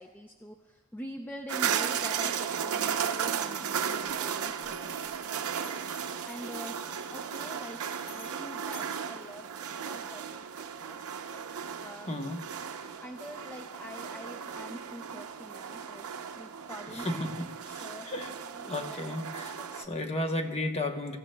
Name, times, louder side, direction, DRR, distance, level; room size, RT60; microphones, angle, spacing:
voice 1, 0.0-5.8 6.2-6.8 7.1-11.0 11.8-12.2 13.0-17.3 17.8-20.0, equal, 10° left, 3 dB, 0.4 m, -46 dB
sound 1, 1.5-19.9, right 7 dB, 80° right, 0.6 m, -35 dB
Bell, 4.0-5.3 5.5-10.0, left 1 dB, 85° left, 2.1 m, -55 dB
voice 2, 12.1-12.5 16.9-18.3 18.6-21.2, left 1 dB, 30° left, 4 dB, 0.9 m, -34 dB
23.5 x 14.0 x 2.2 m, 1.3 s
head